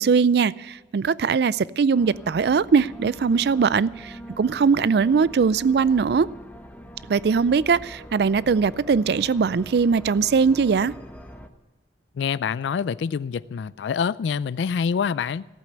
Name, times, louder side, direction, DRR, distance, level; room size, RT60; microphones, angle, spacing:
voice 1, 0.0-6.3 7.1-10.9, right 5 dB, 65° right, 0.4 m, -21 dB
sound 1, 1.9-11.5, equal, 10° left, 0.9 m, -43 dB
voice 2, 12.2-15.5, left 6 dB, 90° left, 0.3 m, -26 dB
15.0 x 8.3 x 7.9 m
head